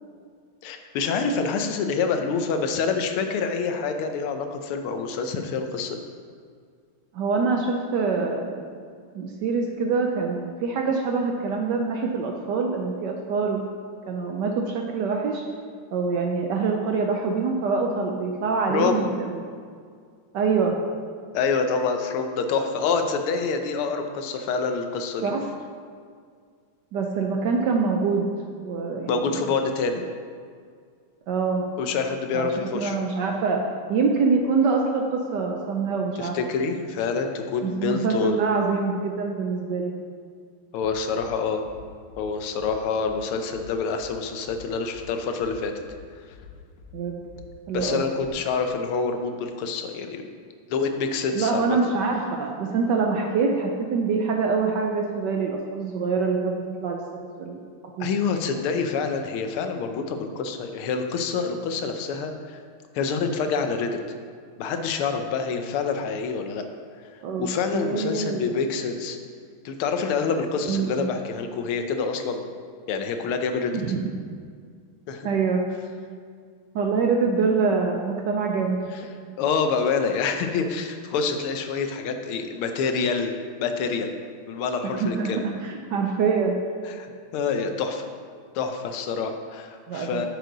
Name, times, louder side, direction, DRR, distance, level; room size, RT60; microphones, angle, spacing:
voice 1, 0.6-6.0 18.7-19.1 21.3-25.3 29.1-30.0 31.8-33.0 36.2-38.5 40.7-41.6 42.2-45.8 47.7-50.3 50.7-51.8 58.0-62.6 62.9-64.0 64.6-66.6 67.4-69.2 69.6-72.4 72.9-73.8 75.1-75.3 79.4-83.3 83.6-84.1 84.5-85.5 86.9-88.1 88.5-90.3, left 5 dB, 80° left, 6 dB, 1.6 m, -27 dB
voice 2, 7.1-8.6 9.1-13.7 14.1-15.4 15.9-19.4 20.3-20.8 25.2-25.4 26.9-28.3 28.6-29.4 31.3-31.6 32.3-33.6 33.9-36.3 37.6-39.9 46.9-47.2 47.7-48.0 51.3-57.0 57.4-57.6 58.0-58.1 67.2-67.5 67.7-68.5 70.6-71.1 73.7-74.2 75.2-75.6 76.7-78.9 84.8-86.6 89.9-90.3, right 4 dB, 70° right, 1 dB, 1.1 m, -25 dB
Bass drum, 40.8-41.3 41.6-42.2 42.6-43.2 43.5-44.1 44.4-45.0 45.4-46.0 46.3-46.9 47.2-47.9 48.2-48.3, left 6 dB, 50° left, 1.3 m, -47 dB
9.1 x 6.4 x 3.9 m, 2.1 s
omnidirectional pair, 2.4 m